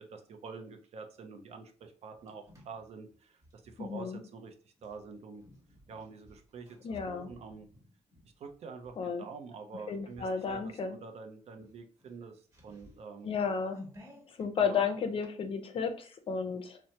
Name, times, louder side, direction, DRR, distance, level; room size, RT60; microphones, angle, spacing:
voice 1, 0.0-4.5 4.8-5.4 5.9-7.7 8.4-13.3 14.6-14.8, right 4 dB, 60° right, 5 dB, 0.5 m, -47 dB
sound 1, 1.8-3.8 4.8-9.0 9.5-9.7 10.1-10.8 11.1-11.2 11.5-14.5, left 1 dB, 30° right, 1.1 m, -55 dB
voice 2, 3.8-4.2 6.8-7.3 9.0-9.3 9.9-11.0 13.2-13.8 14.3-16.8, left 6 dB, 50° left, 6 dB, 0.5 m, -33 dB
3.1 x 2.0 x 2.7 m, 0.40 s
cardioid pair, 115°, 12 cm